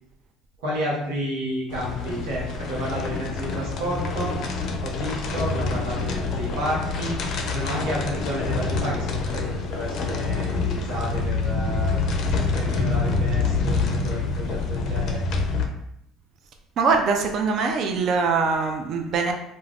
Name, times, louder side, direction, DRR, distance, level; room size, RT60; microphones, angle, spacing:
voice 1, 0.6-4.4 4.8-7.2 7.4-12.0 12.5-15.2, equal, 75° right, -5 dB, 0.8 m, -31 dB
sound 1, 1.7-15.7, left 3 dB, 60° left, 0.4 m, -26 dB
voice 2, 16.8-19.3, right 4 dB, 55° right, 4 dB, 0.4 m, -22 dB
2.3 x 2.1 x 3.3 m, 0.81 s
hypercardioid pair, 65°, 0 cm